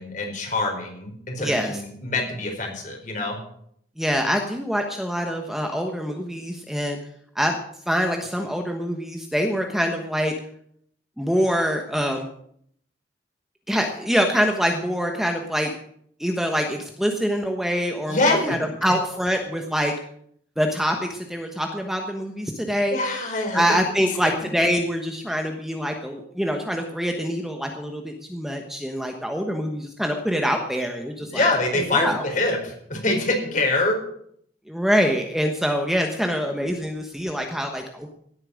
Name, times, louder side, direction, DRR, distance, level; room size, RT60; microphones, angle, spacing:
voice 1, 0.0-3.4 18.1-18.6 22.9-23.6 23.9-24.0 31.3-34.0, left 2 dB, 45° left, 2 dB, 4.7 m, -24 dB
voice 2, 1.4-1.8 4.0-7.0 7.3-7.6 7.9-10.3 11.2-12.3 13.7-15.7 16.2-19.9 20.6-23.0 23.5-31.5 31.9-32.2 34.7-38.1, equal, ahead, 3 dB, 1.2 m, -25 dB
17.0 x 8.8 x 6.5 m, 0.67 s
head